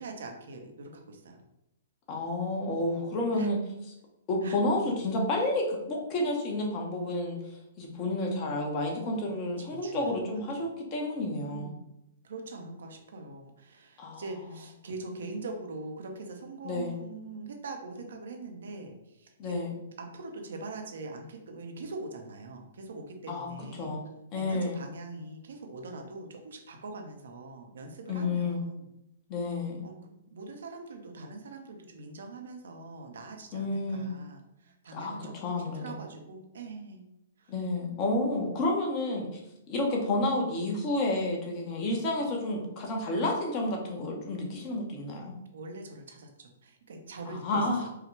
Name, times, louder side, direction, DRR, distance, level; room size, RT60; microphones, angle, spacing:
voice 1, 0.0-1.4 3.3-3.5 4.4-4.6 9.6-10.1 10.5-10.6 11.4-11.9 12.2-19.6 20.0-23.9 24.3-28.9 29.8-37.0 37.4-37.5 45.5-47.9, right 3 dB, 70° right, 3 dB, 0.8 m, -43 dB
voice 2, 2.1-3.6 4.3-7.4 7.8-11.7 14.0-14.2 16.6-17.0 19.4-19.8 23.3-23.5 23.8-24.8 28.1-28.6 29.3-29.8 33.5-34.1 34.9-36.0 37.5-39.3 39.7-45.3 47.3-47.8, left 2 dB, 35° left, 0 dB, 1.1 m, -30 dB
4.6 x 2.4 x 3.2 m, 0.86 s
hypercardioid pair, 125°, 0 cm